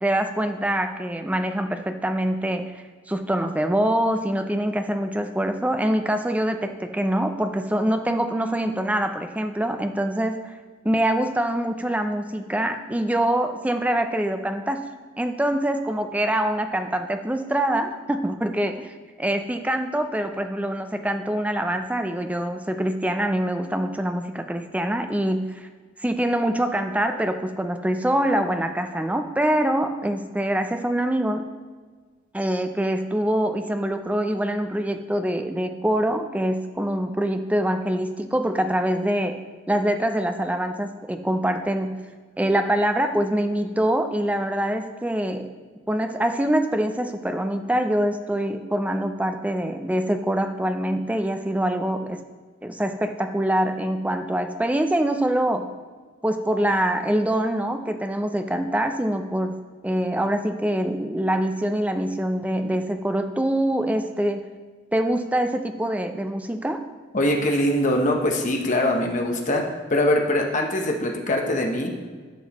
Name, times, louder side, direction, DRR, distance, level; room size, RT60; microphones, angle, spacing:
voice 1, 0.0-2.7 3.1-10.6 10.8-14.9 15.2-18.9 19.2-25.7 26.0-31.5 32.3-39.4 39.7-42.0 42.4-45.5 45.9-52.3 52.6-55.7 56.2-64.5 64.9-66.9, right 1 dB, 10° right, 7 dB, 0.4 m, -24 dB
voice 2, 67.1-69.7 69.9-71.9, left 1 dB, 40° left, 1 dB, 0.9 m, -22 dB
11.0 x 6.2 x 3.0 m, 1.5 s
head